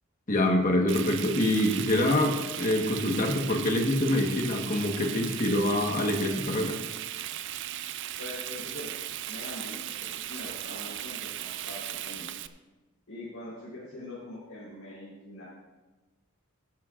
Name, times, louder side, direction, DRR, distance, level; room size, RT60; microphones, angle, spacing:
voice 1, 0.3-6.8, left 1 dB, 40° left, 2 dB, 1.4 m, -25 dB
Frying (food), 0.9-12.5, right 12 dB, 55° right, 0.4 m, -37 dB
voice 2, 8.2-8.9 9.3-12.3 13.1-15.4, left 1 dB, 80° left, -8 dB, 3.9 m, -43 dB
16.0 x 11.0 x 2.5 m, 1.2 s
head